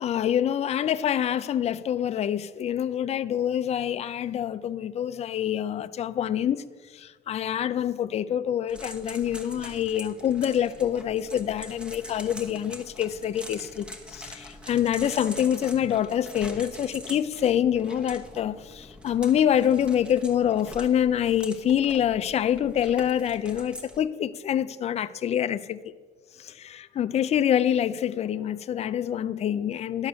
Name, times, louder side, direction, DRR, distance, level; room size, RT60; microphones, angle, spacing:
voice 1, 0.0-6.6 6.9-25.8 26.4-30.1, left 10 dB, 40° left, 0.4 m, -26 dB
sound 1, 8.7-24.0, left 1 dB, 5° right, 1.1 m, -44 dB
11.0 x 6.6 x 6.2 m
cardioid pair, 110°, 17 cm